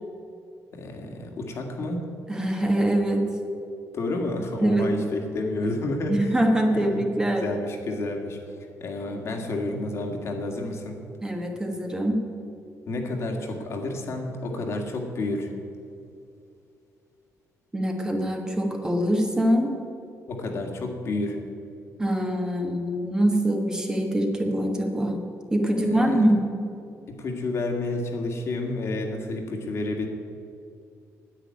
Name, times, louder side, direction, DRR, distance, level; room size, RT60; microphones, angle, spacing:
voice 1, 0.7-2.0 3.9-6.3 6.7-7.1 7.4-8.4 8.8-11.0 12.9-15.5 20.3-21.4 25.8-26.2 27.1-30.1, left 2 dB, 50° left, 2 dB, 2.0 m, -30 dB
voice 2, 2.3-3.2 4.6-4.9 6.1-7.5 11.2-12.2 17.7-19.7 22.0-25.2 25.5-26.4, right 1 dB, 10° right, 2 dB, 1.5 m, -24 dB
10.0 x 9.0 x 9.5 m, 2.6 s
cardioid pair, 145°, 6 cm